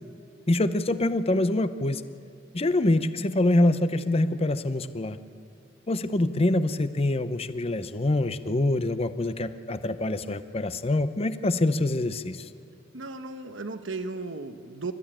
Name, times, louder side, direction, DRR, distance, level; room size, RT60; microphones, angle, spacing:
voice 1, 0.5-2.0 2.5-5.2 5.9-12.5, left 2 dB, 30° left, 12 dB, 0.7 m, -25 dB
voice 2, 12.9-14.9, right 3 dB, 90° right, 8 dB, 1.1 m, -35 dB
28.0 x 13.5 x 9.0 m, 2.7 s
head